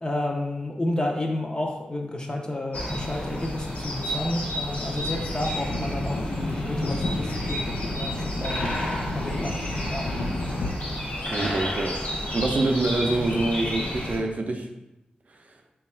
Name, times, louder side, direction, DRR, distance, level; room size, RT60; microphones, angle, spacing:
voice 1, 0.0-8.7 9.1-9.6 9.9-10.1, left 1 dB, 30° left, 0 dB, 0.5 m, -31 dB
sound 1, 2.7-14.2, left 1 dB, 70° left, 1.1 m, -31 dB
sound 2, 4.9-10.7, left 1 dB, 90° left, 0.4 m, -32 dB
voice 2, 11.3-12.0 12.3-14.7 15.3-15.4, right 2 dB, 50° right, 3 dB, 0.4 m, -25 dB
3.0 x 2.3 x 4.2 m, 0.96 s
wide cardioid pair, 90°, 3 cm